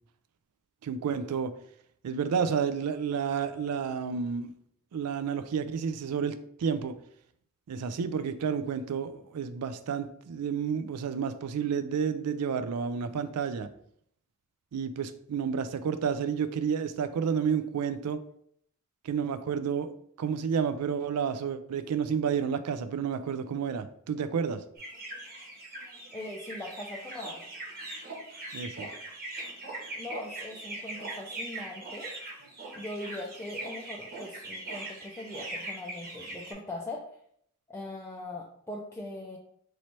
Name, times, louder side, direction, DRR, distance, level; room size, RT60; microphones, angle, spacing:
voice 1, 0.8-1.5 2.0-4.5 4.9-7.0 7.7-13.7 14.7-18.2 19.0-19.9 20.2-24.6 28.5-28.9, right 6 dB, 85° right, 0.4 m, -30 dB
sound 1, 24.8-36.5, right 2 dB, 45° right, 1.1 m, -41 dB
voice 2, 26.1-27.4 30.0-32.1 32.7-37.1 37.7-39.4, left 2 dB, 10° left, 0.4 m, -40 dB
3.1 x 3.0 x 4.2 m
head